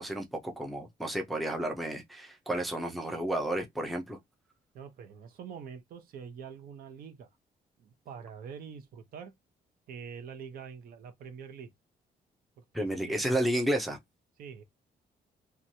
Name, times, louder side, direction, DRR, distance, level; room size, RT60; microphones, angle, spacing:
voice 1, 0.0-4.2 12.7-14.0, right 1 dB, ahead, 0.5 m, -31 dB
voice 2, 4.7-7.3 7.8-9.3 9.9-11.7 12.6-13.3 14.4-14.6, right 7 dB, 65° right, 0.8 m, -45 dB
3.0 x 2.3 x 2.6 m
cardioid pair, 180°, 16 cm